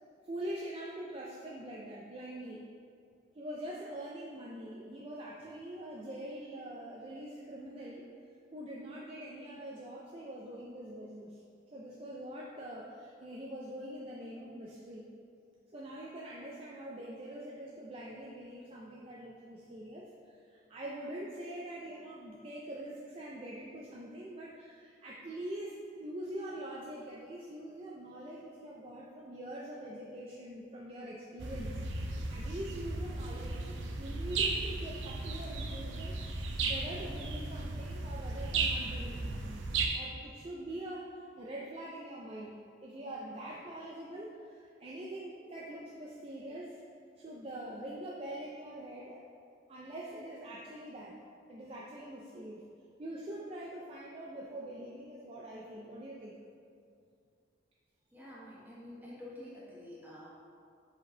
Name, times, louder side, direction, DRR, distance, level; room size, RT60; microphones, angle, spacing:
voice 1, 0.2-2.6 3.3-8.1 8.5-11.4 11.7-15.1 15.7-31.8 32.3-36.2 36.6-39.6 39.9-46.8 47.2-49.2 49.7-51.2 51.5-52.6 53.0-56.4, right 1 dB, 30° right, -4 dB, 0.5 m, -44 dB
sound 1, 31.4-39.9, right 3 dB, 80° right, 0.6 m, -35 dB
voice 2, 58.1-60.3, left 1 dB, 10° right, -7 dB, 1.3 m, -48 dB
5.0 x 5.0 x 3.9 m, 2.4 s
head